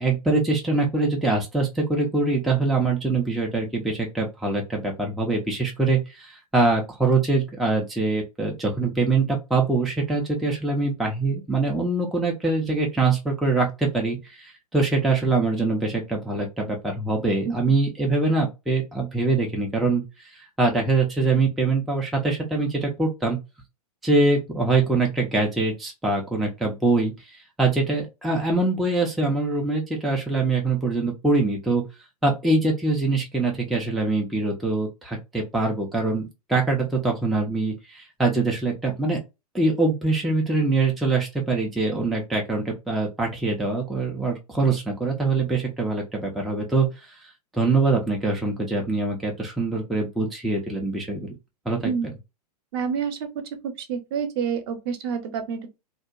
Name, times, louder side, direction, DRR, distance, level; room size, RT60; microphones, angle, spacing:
voice 1, 0.0-23.4 24.0-31.8 32.2-39.2 39.5-47.2 47.5-51.3 51.7-51.9, right 3 dB, ahead, 0.3 m, -24 dB
voice 2, 52.7-53.2 53.6-55.7, right 7 dB, 35° right, 0.6 m, -28 dB
2.7 x 2.1 x 2.3 m
figure-of-eight pair, 105°, 21 cm